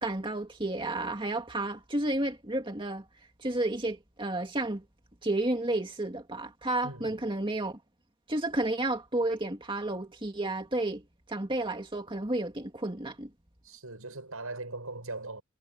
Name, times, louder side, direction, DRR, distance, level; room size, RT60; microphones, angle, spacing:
voice 1, 0.0-3.0 3.4-4.8 5.2-7.8 8.3-11.0 11.3-13.3, right 2 dB, 25° right, 2.2 m, -31 dB
voice 2, 6.8-7.2 13.6-15.4, right 2 dB, 80° right, 6.0 m, -40 dB
head